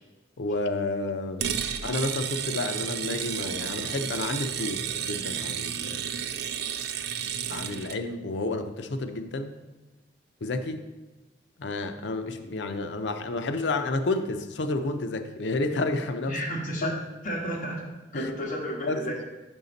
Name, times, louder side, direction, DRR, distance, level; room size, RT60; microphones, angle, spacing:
voice 1, 0.4-6.1 7.5-9.6 10.4-10.8 11.6-16.4 16.8-17.0 18.1-18.3 18.8-19.0, left 2 dB, 70° left, 8 dB, 0.5 m, -30 dB
sound 1, 1.4-8.0, right 8 dB, 65° right, 0.4 m, -32 dB
voice 2, 16.2-16.9 17.2-17.8 18.1-19.2, equal, 45° left, -2 dB, 1.4 m, -32 dB
5.8 x 5.4 x 4.0 m, 1.1 s
head